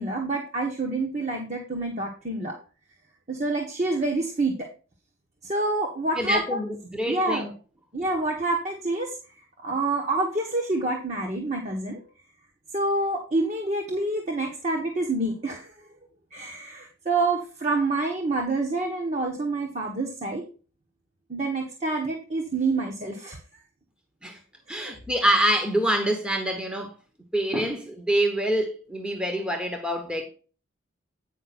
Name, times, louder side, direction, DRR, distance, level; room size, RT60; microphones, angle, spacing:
voice 1, 0.0-2.5 3.3-4.7 5.4-6.6 7.1-7.5 7.9-9.2 9.6-12.0 12.7-15.7 16.3-20.4 21.3-23.6 24.7-24.9, right 2 dB, 35° right, 1.3 m, -27 dB
voice 2, 6.2-7.5 24.2-24.4 24.7-26.9 27.3-30.3, right 1 dB, 5° right, 1.1 m, -26 dB
9.3 x 5.3 x 4.2 m
head